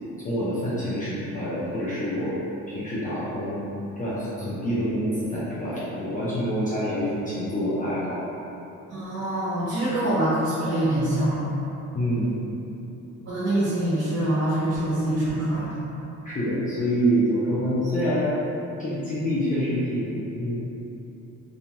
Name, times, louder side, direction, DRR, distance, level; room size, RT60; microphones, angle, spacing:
voice 1, 0.2-2.4 2.7-3.6 4.0-8.2 11.9-12.4 16.2-18.3 18.8-20.6, equal, 25° left, -10 dB, 0.5 m, -26 dB
voice 2, 8.9-11.4 13.3-15.8, right 1 dB, 50° right, -10 dB, 0.7 m, -25 dB
2.4 x 2.2 x 2.8 m, 3.0 s
cardioid pair, 90°, 30 cm